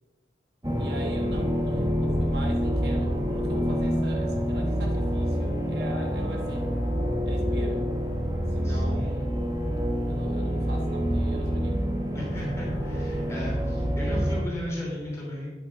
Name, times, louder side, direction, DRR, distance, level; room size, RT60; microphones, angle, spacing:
sound 1, 0.6-14.4, equal, 20° right, 1.1 m, -27 dB
voice 1, 0.8-6.7 7.2-7.9 8.5-9.5 10.1-11.9, right 2 dB, 60° right, 1 dB, 1.2 m, -41 dB
voice 2, 8.6-9.3 12.1-15.5, left 1 dB, 15° left, -4 dB, 2.9 m, -35 dB
9.2 x 6.7 x 5.0 m, 1.3 s
head